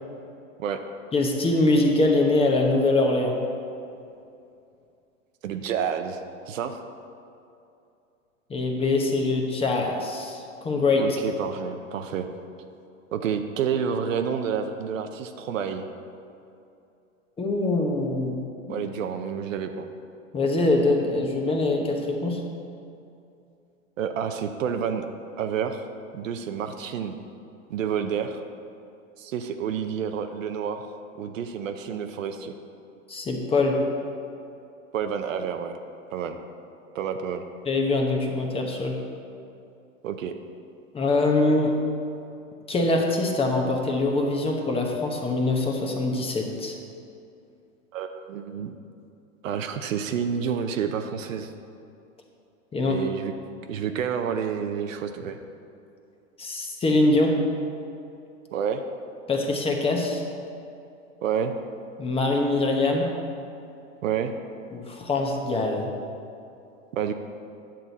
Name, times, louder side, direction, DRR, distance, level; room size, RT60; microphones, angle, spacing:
voice 1, 1.1-3.4 8.5-11.2 17.4-18.4 18.7-18.8 20.3-22.4 33.1-33.8 37.6-39.0 40.9-41.7 42.7-46.7 52.7-53.0 56.4-57.3 59.3-60.2 62.0-63.1 64.7-65.9, left 2 dB, 15° left, 1 dB, 1.0 m, -23 dB
voice 2, 5.4-6.2 6.5-6.8 11.0-12.3 13.1-15.9 18.7-19.9 24.0-25.1 25.4-25.8 26.1-27.2 27.7-28.4 29.2-30.9 31.2-32.5 34.9-35.7 36.1-36.4 36.9-37.4 40.0-40.3 47.9-48.7 49.4-51.5 52.9-53.3 53.7-55.4 58.5-58.8 61.2-61.5 64.0-64.3 66.9-67.1, right 7 dB, 80° right, 6 dB, 0.7 m, -29 dB
10.0 x 7.6 x 4.1 m, 2.6 s
hypercardioid pair, 125°, 39 cm